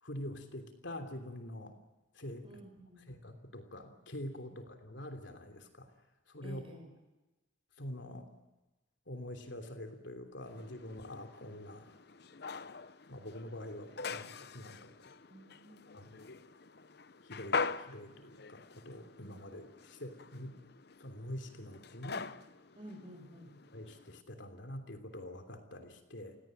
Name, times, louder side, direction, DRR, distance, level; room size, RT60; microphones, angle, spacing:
voice 1, 0.0-1.8 2.1-2.5 3.1-5.9 6.3-6.6 7.8-8.3 9.1-12.0 13.1-15.2 15.9-16.2 17.2-20.6 21.0-22.2 23.7-26.4, left 1 dB, 70° left, 6 dB, 3.3 m, -45 dB
voice 2, 2.4-3.0 6.4-6.9 15.3-15.8 22.8-23.6, equal, 30° right, 5 dB, 5.7 m, -51 dB
sound 1, 10.5-24.2, left 4 dB, 55° left, 0.8 m, -43 dB
29.5 x 17.5 x 9.1 m, 1.1 s
head